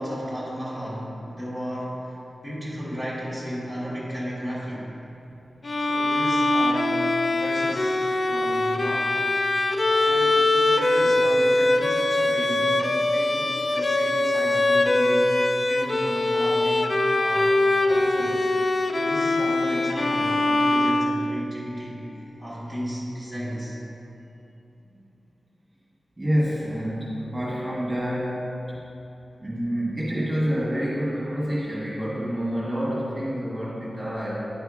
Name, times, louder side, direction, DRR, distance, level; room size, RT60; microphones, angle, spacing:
voice 1, 0.0-5.0 5.8-9.1 10.0-15.4 15.6-17.6 17.9-18.6 18.9-23.8 27.5-27.6, equal, 10° left, -8 dB, 1.7 m, -34 dB
Bowed string instrument, 5.6-21.6, left 2 dB, 40° left, 0.3 m, -22 dB
voice 2, 26.2-28.4 29.4-34.3, equal, 20° right, -8 dB, 1.6 m, -27 dB
10.0 x 3.4 x 4.8 m, 2.9 s
wide cardioid pair, 115°, 0 cm